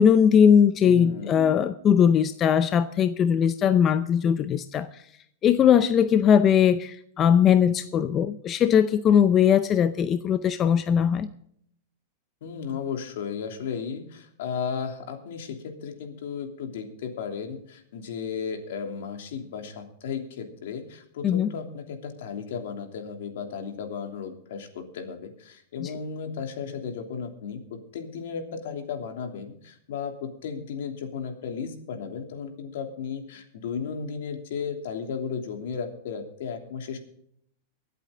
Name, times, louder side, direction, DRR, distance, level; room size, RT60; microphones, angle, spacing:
voice 1, 0.0-5.0 5.4-11.3 21.2-21.5 25.8-25.9, left 8 dB, 25° left, 12 dB, 0.6 m, -20 dB
voice 2, 0.8-1.5 12.4-37.0, left 6 dB, 70° left, 5 dB, 3.0 m, -34 dB
23.5 x 8.5 x 3.9 m, 0.67 s
supercardioid pair, 155°, 0 cm